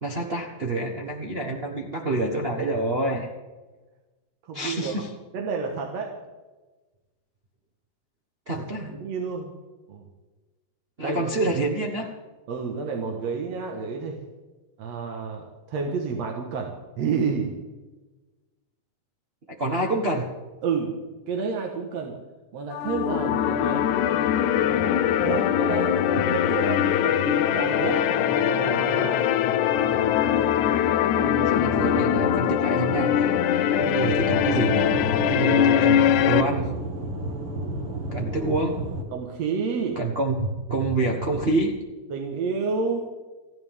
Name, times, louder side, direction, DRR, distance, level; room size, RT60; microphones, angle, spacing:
voice 1, 0.0-3.3 4.5-5.1 8.5-8.9 11.0-12.1 19.6-20.3 25.3-25.5 31.2-33.4 33.8-34.9 35.2-36.7 38.1-38.8 40.0-41.7, right 2 dB, 90° right, 0 dB, 0.5 m, -27 dB
voice 2, 4.4-5.0 5.3-6.2 8.9-9.5 9.9-10.1 11.0-11.5 12.5-14.2 14.8-17.6 20.6-21.0 21.3-22.2 22.5-23.8 25.0-29.2 39.1-40.0 42.1-43.0, right 5 dB, 65° right, 1 dB, 2.5 m, -30 dB
sound 1, 22.7-36.4, left 9 dB, 85° left, 2.1 m, -22 dB
Aircraft / Engine, 34.0-39.0, right 2 dB, 50° right, 2.8 m, -32 dB
30.0 x 11.0 x 3.6 m, 1.2 s
omnidirectional pair, 3.4 m